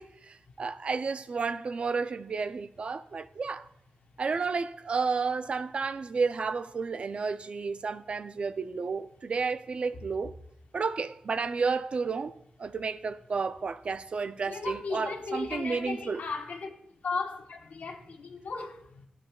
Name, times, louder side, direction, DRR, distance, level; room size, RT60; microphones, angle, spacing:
voice 1, 0.0-3.7 4.2-10.3 10.7-12.3 12.6-16.2, right 4 dB, 50° right, 0.4 m, -31 dB
voice 2, 14.5-16.7 17.0-19.0, left 4 dB, 80° left, 1.2 m, -36 dB
15.0 x 7.6 x 2.3 m
wide cardioid pair, 160°, 3 cm